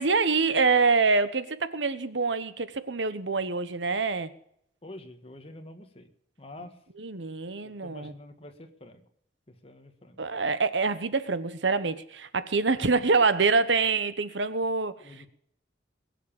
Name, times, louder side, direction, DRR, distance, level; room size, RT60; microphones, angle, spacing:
voice 1, 0.0-4.3 7.0-8.1 10.2-15.0, right 4 dB, 85° right, 1.1 m, -25 dB
voice 2, 4.8-6.1 6.4-6.8 7.6-9.0 9.5-10.2 15.0-15.3, left 1 dB, 30° left, 1.8 m, -47 dB
21.5 x 7.4 x 7.2 m
head